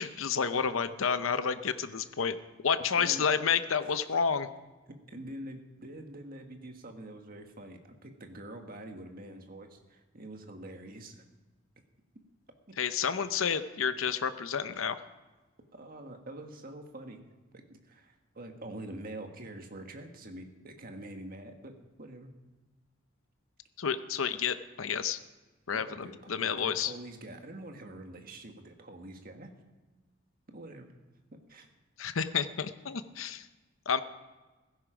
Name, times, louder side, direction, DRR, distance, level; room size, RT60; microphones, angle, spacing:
voice 1, 0.0-2.4 2.6-4.5 12.8-15.0 23.8-25.2 25.7-26.9 32.0-33.5 33.9-34.0, left 6 dB, 90° left, 11 dB, 0.7 m, -30 dB
voice 2, 2.9-3.3 4.9-11.2 12.7-12.8 15.7-17.2 17.5-22.3 25.7-29.5 30.5-30.9 31.3-31.7, right 1 dB, 45° right, 4 dB, 1.6 m, -45 dB
16.5 x 13.5 x 5.1 m, 1.2 s
head